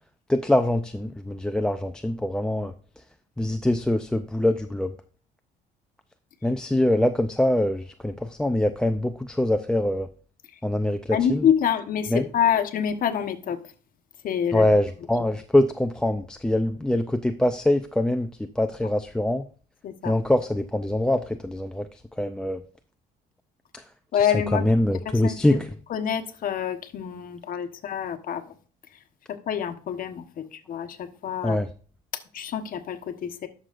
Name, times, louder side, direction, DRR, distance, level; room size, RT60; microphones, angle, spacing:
voice 1, 0.3-2.7 3.4-4.9 6.4-10.1 10.6-11.5 12.1-12.3 14.5-19.4 20.0-22.6 23.7-23.8 24.2-25.7 31.4-31.7, left 1 dB, 5° left, 0.5 m, -24 dB
voice 2, 11.1-13.6 14.2-14.7 19.8-20.1 24.1-24.7 25.0-25.6 25.9-28.4 29.3-31.6 32.3-33.5, left 9 dB, 55° left, 1.2 m, -26 dB
11.5 x 6.5 x 2.5 m
cardioid pair, 110°, 17 cm